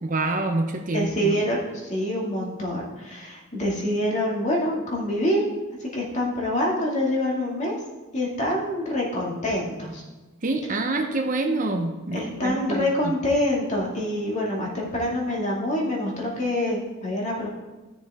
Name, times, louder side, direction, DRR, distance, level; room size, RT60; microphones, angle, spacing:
voice 1, 0.0-1.4 10.4-13.1, right 2 dB, 40° right, 4 dB, 0.7 m, -26 dB
voice 2, 0.9-5.5 5.8-7.8 8.1-10.0 12.1-17.5, left 1 dB, 35° left, -3 dB, 2.2 m, -26 dB
14.0 x 6.7 x 3.6 m, 1.2 s
head